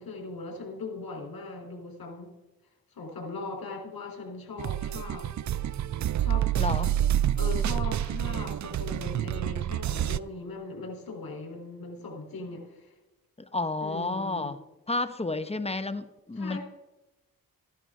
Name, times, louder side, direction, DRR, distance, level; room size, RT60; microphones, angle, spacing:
voice 1, 0.0-2.3 3.0-5.3 6.2-6.5 7.3-12.9 13.8-14.5 16.4-16.6, left 3 dB, 70° left, 1 dB, 3.8 m, -39 dB
sound 1, 4.6-10.2, right 11 dB, 50° right, 0.5 m, -28 dB
voice 2, 6.6-6.9 13.4-14.6 14.9-16.6, left 2 dB, 15° left, 11 dB, 1.0 m, -31 dB
14.5 x 11.0 x 3.7 m, 1.0 s
cardioid pair, 55°, 36 cm